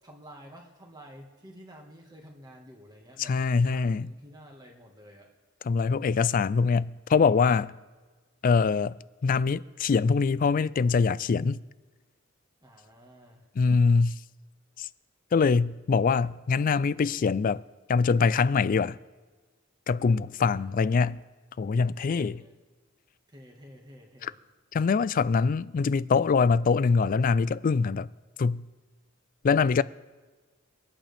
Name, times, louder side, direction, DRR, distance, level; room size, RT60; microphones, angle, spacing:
voice 1, 0.0-5.3 12.6-13.5 20.5-21.3 22.1-22.6 23.3-24.4, equal, 20° right, 1.7 m, -51 dB
voice 2, 3.2-4.1 5.7-7.7 8.4-8.9 9.2-11.6 13.6-14.2 14.8-14.9 15.3-17.6 17.9-19.0 19.9-21.2 21.6-22.4 24.2-24.3 24.7-28.1 28.4-28.6 29.4-29.8, left 5 dB, 45° left, 0.3 m, -23 dB
25.0 x 8.8 x 3.5 m
head